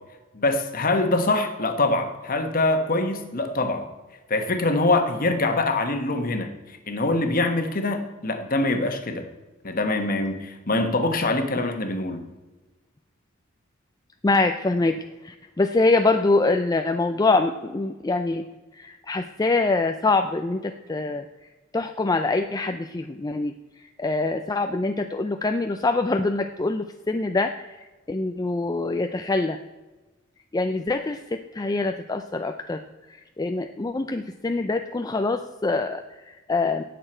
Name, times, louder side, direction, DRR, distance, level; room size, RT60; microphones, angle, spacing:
voice 1, 0.3-3.9 4.3-6.5 6.9-9.3 9.6-12.2, left 2 dB, 45° left, 6 dB, 1.3 m, -24 dB
voice 2, 14.2-18.4 18.7-21.3 21.7-27.8 28.1-29.6 30.5-32.8 33.1-36.8, left 3 dB, 20° left, 6 dB, 0.4 m, -24 dB
17.5 x 6.8 x 4.4 m, 1.2 s
head